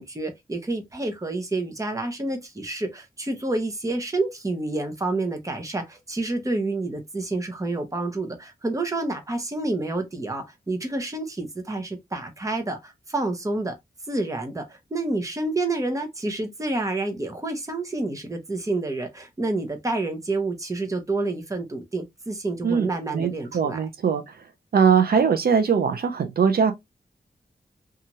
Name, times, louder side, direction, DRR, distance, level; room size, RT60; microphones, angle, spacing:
voice 1, 0.0-13.7 14.1-23.8, right 2 dB, 20° right, 0.8 m, -29 dB
voice 2, 22.6-24.4 24.7-26.7, right 6 dB, 70° right, 0.5 m, -21 dB
2.8 x 2.4 x 2.8 m
wide cardioid pair, 120°, 17 cm